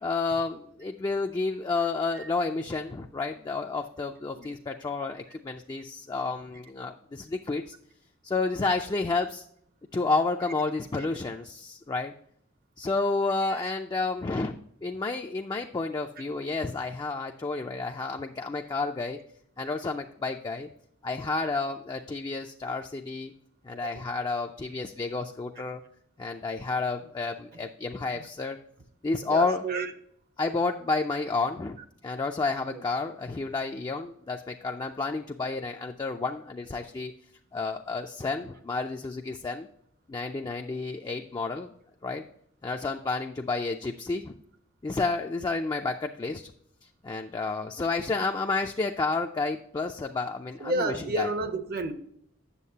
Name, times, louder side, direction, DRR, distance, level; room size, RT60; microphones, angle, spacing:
voice 1, 0.0-7.7 8.2-9.5 9.9-12.1 12.8-14.6 14.8-19.2 19.6-20.7 21.0-23.3 23.6-25.8 26.2-28.6 29.0-29.6 30.4-31.8 32.0-37.1 37.5-39.7 40.1-41.7 42.0-42.3 42.6-44.3 44.8-46.5 46.8-51.3, left 3 dB, 20° left, 3 dB, 0.3 m, -30 dB
voice 2, 29.3-29.9 32.7-32.8 50.6-51.9, right 2 dB, 50° right, 9 dB, 0.7 m, -31 dB
8.3 x 7.1 x 2.8 m, 0.70 s
head